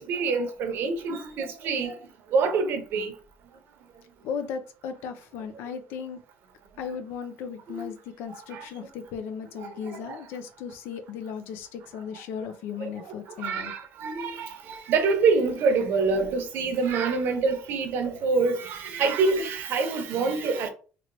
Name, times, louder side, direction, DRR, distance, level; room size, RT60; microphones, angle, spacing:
voice 1, 0.0-2.0 2.3-3.1 7.7-7.8 8.5-8.6 9.6-10.2 12.8-12.9 13.4-20.7, right 4 dB, 65° right, 0.7 m, -26 dB
voice 2, 4.2-6.2 6.8-13.7, left 7 dB, 80° left, 0.5 m, -36 dB
3.0 x 3.0 x 2.6 m
cardioid pair, 125°, 4 cm